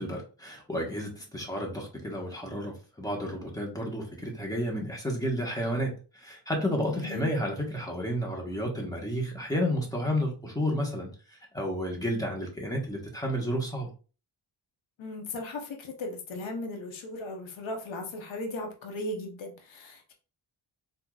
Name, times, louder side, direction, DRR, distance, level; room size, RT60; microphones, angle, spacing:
voice 1, 0.0-13.9, equal, 10° left, -1 dB, 1.3 m, -31 dB
voice 2, 15.0-20.1, left 2 dB, 80° left, 3 dB, 1.0 m, -37 dB
4.4 x 2.8 x 2.4 m, 0.36 s
cardioid pair, 85°, 45 cm